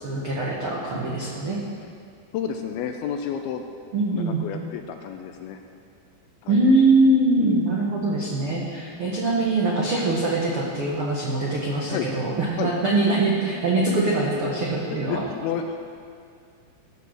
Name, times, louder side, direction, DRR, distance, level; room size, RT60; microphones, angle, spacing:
voice 1, 0.0-1.6 3.9-4.4 6.5-15.2, right 2 dB, 80° right, -4 dB, 1.2 m, -23 dB
voice 2, 2.3-3.6 4.1-5.6 6.4-6.6 7.4-7.7 11.9-12.1 12.6-12.7 14.9-15.8, left 8 dB, 85° left, 5 dB, 2.3 m, -30 dB
17.0 x 6.8 x 6.4 m, 2.3 s
omnidirectional pair, 4.7 m